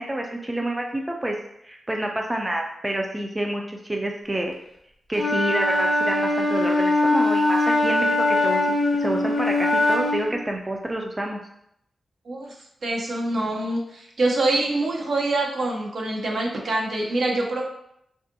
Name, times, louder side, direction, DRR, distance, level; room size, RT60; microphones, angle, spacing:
voice 1, 0.0-1.3 1.6-4.5 5.1-11.4, right 1 dB, 15° right, 1 dB, 0.3 m, -28 dB
Wind instrument woodwind instrument, 5.1-10.3, left 2 dB, 60° left, 0.5 m, -21 dB
voice 2, 12.8-17.6, right 2 dB, 65° right, -1 dB, 0.6 m, -25 dB
2.5 x 2.4 x 2.6 m, 0.75 s
cardioid pair, 80°, 0 cm